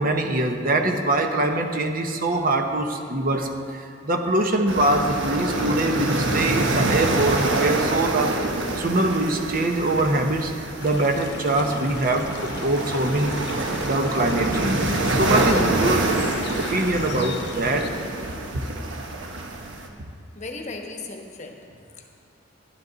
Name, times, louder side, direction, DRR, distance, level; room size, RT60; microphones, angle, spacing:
voice 1, 0.0-8.4 8.7-10.5 10.8-16.1 16.5-17.9 18.5-18.6, right 2 dB, 45° right, 4 dB, 0.8 m, -23 dB
sound 1, 4.7-19.9, right 2 dB, 70° right, 1.2 m, -26 dB
sound 2, 10.8-17.9, left 5 dB, 60° left, 0.9 m, -39 dB
voice 2, 20.3-22.1, left 3 dB, 35° left, 2 dB, 1.1 m, -37 dB
12.5 x 11.5 x 4.0 m, 2.4 s
head